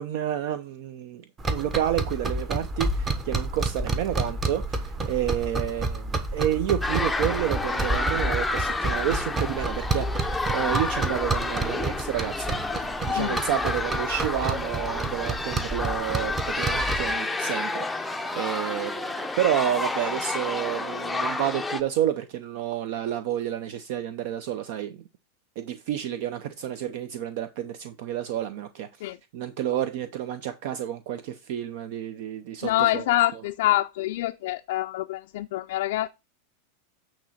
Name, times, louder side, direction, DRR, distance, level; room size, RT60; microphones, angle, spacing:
voice 1, 0.0-25.0 25.6-29.1 29.3-33.0 33.3-33.4, right 11 dB, 60° right, 0.6 m, -30 dB
sound 1, 1.4-17.1, right 2 dB, 20° right, 0.9 m, -30 dB
sound 2, 6.8-21.8, left 2 dB, 5° left, 0.5 m, -30 dB
voice 2, 32.6-36.1, left 15 dB, 70° left, 0.4 m, -26 dB
8.8 x 3.0 x 5.7 m
supercardioid pair, 140°, 0 cm